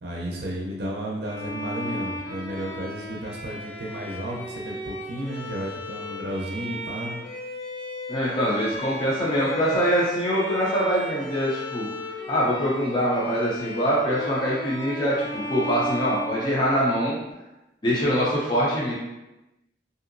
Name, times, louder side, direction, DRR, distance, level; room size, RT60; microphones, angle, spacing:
voice 1, 0.0-7.2, right 1 dB, 60° right, -3 dB, 0.5 m, -33 dB
Bowed string instrument, 1.2-17.1, left 1 dB, 85° left, 0.8 m, -35 dB
voice 2, 8.1-15.1 15.5-17.2 17.8-18.9, equal, 25° left, -6 dB, 0.5 m, -24 dB
3.0 x 2.6 x 2.5 m, 1.0 s
head